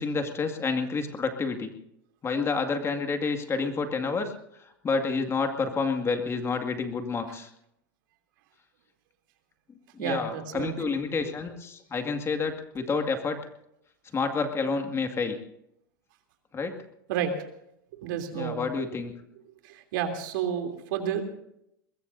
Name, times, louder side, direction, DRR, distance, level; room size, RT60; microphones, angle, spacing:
voice 1, 0.0-1.7 2.2-4.3 4.8-7.5 10.0-13.4 14.1-15.4 16.5-16.7 18.3-19.1, left 4 dB, 25° left, 6 dB, 2.1 m, -29 dB
voice 2, 10.0-10.7 17.1-17.3 17.9-18.7 19.6-21.2, right 8 dB, 70° right, 4 dB, 3.2 m, -31 dB
22.0 x 21.5 x 2.7 m, 0.76 s
hypercardioid pair, 110°, 11 cm